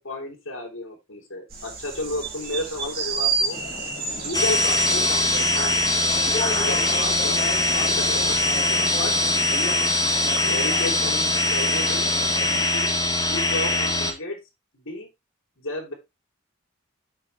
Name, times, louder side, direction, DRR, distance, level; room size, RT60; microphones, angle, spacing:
voice 1, 0.0-3.6 4.0-6.0 6.6-9.8 10.4-12.2 12.7-14.4 14.7-15.1 15.6-15.9, left 1 dB, 70° left, -3 dB, 3.8 m, -33 dB
sound 1, 1.5-8.6, right 4 dB, 50° right, 3.1 m, -31 dB
sound 2, 3.5-12.7, left 4 dB, 35° left, 0.6 m, -35 dB
sound 3, 4.3-14.1, left 2 dB, 20° left, 1.7 m, -22 dB
7.8 x 7.0 x 3.4 m, 0.22 s
head